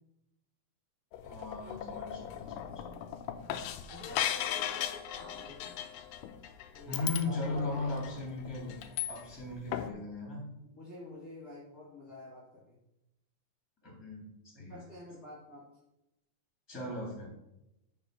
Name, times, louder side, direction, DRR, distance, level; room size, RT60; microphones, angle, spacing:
sound 1, 1.1-9.5 9.7-9.9, left 10 dB, 85° left, 1.5 m, -38 dB
voice 1, 1.2-2.8 6.9-10.5 13.8-14.8 16.7-17.3, left 2 dB, 10° left, -3 dB, 2.7 m, -38 dB
voice 2, 3.9-5.7 6.7-7.9 10.6-12.8 14.7-15.6, left 1 dB, 35° left, -7 dB, 2.3 m, -49 dB
6.9 x 5.1 x 5.7 m, 0.87 s
omnidirectional pair, 3.5 m